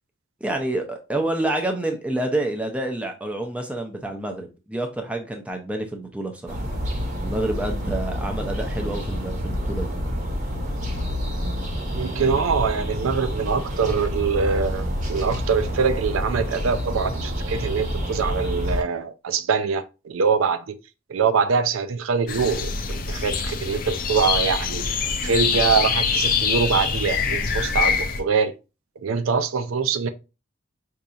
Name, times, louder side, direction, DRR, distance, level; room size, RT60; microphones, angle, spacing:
voice 1, 0.4-6.6 7.2-9.9, right 1 dB, 5° right, 0.5 m, -28 dB
sound 1, 6.5-18.8, equal, 35° right, 0.9 m, -28 dB
voice 2, 11.9-20.8 21.1-24.8 25.2-28.5 29.0-30.1, right 5 dB, 80° right, 0.4 m, -24 dB
sound 2, 22.3-28.2, left 5 dB, 45° left, 0.5 m, -24 dB
5.2 x 2.8 x 2.4 m
head